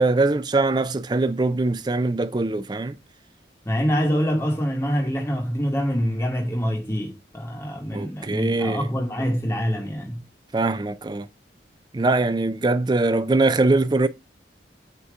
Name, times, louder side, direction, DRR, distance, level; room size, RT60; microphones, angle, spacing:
voice 1, 0.0-3.0 7.9-8.9 10.5-11.3 11.9-14.1, right 2 dB, 25° right, 0.4 m, -22 dB
voice 2, 3.6-10.2, equal, 15° left, 1.1 m, -25 dB
8.2 x 2.8 x 4.7 m
head